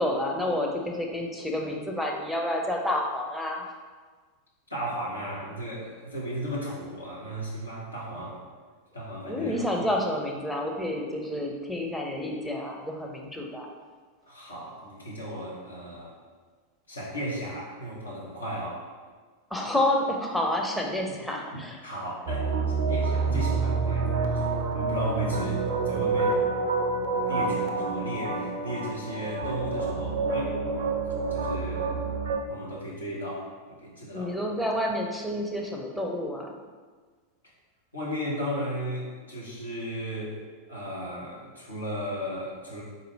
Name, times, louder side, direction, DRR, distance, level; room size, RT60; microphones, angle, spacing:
voice 1, 0.0-3.7 9.3-13.7 19.5-21.8 34.1-36.5, left 1 dB, ahead, -1 dB, 0.6 m, -29 dB
voice 2, 4.7-8.4 8.9-9.9 14.3-16.1 16.9-18.8 21.8-22.5 22.9-24.5 24.7-26.4 27.0-30.6 31.3-32.0 32.5-34.4 37.9-40.4 40.7-42.8, equal, 80° left, -5 dB, 1.1 m, -35 dB
sound 1, 22.3-32.4, right 4 dB, 55° right, 0.4 m, -28 dB
4.0 x 2.7 x 4.1 m, 1.4 s
figure-of-eight pair, 85°, 0 cm